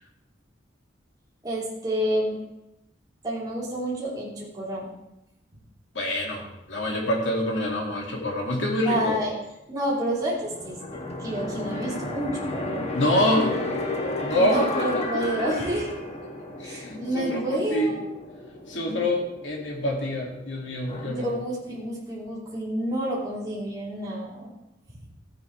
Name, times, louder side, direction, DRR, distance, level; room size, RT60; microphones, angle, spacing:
voice 1, 1.4-2.4 3.2-4.9 8.9-9.3 9.7-10.8 11.2-12.9 14.3-15.9 16.6-18.0 21.1-24.5, right 1 dB, 20° right, -7 dB, 3.8 m, -29 dB
voice 2, 5.9-9.2 12.9-13.5 14.2-15.5 16.6-18.0 18.7-21.3, left 1 dB, 75° left, -1 dB, 2.5 m, -26 dB
sound 1, 10.4-21.1, left 2 dB, 35° left, 1.3 m, -33 dB
15.5 x 9.6 x 3.4 m, 0.89 s
head